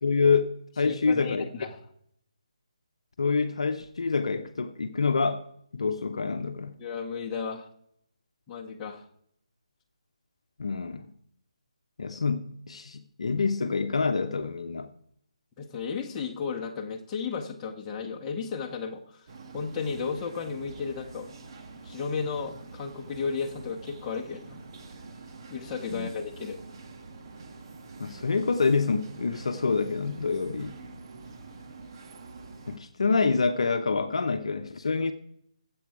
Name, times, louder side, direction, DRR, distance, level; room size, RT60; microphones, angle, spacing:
voice 1, 0.0-1.5 3.2-5.4 5.7-6.8 10.6-11.1 12.0-14.9 25.9-26.1 28.0-30.8 32.7-35.1, left 4 dB, 60° left, 0.9 m, -27 dB
voice 2, 0.8-1.8 6.8-7.7 8.5-9.0 15.6-19.3 19.5-21.3 21.8-24.6 25.5-26.6, left 5 dB, 15° left, 1.5 m, -34 dB
sound 1, 19.3-32.8, right 3 dB, 40° right, 1.6 m, -46 dB
19.0 x 8.0 x 4.8 m
figure-of-eight pair, 150°, 4 cm